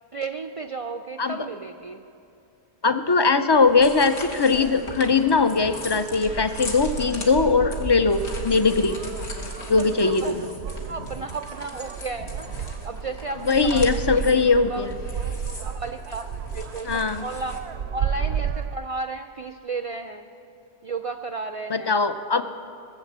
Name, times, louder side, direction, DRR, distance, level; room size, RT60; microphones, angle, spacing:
voice 1, 0.1-2.0 9.5-10.3 10.9-14.9 15.4-17.6 17.9-20.3 20.8-22.0, right 4 dB, 55° right, 7 dB, 0.4 m, -34 dB
voice 2, 2.8-9.0 9.7-10.5 13.5-14.9 16.8-17.2 21.7-22.4, left 4 dB, 45° left, 10 dB, 0.3 m, -20 dB
sound 1, 3.5-17.6, left 2 dB, 85° left, 1.7 m, -40 dB
sound 2, 4.5-18.8, right 7 dB, 85° right, 0.8 m, -33 dB
18.5 x 7.4 x 7.4 m, 2.6 s
omnidirectional pair, 1.1 m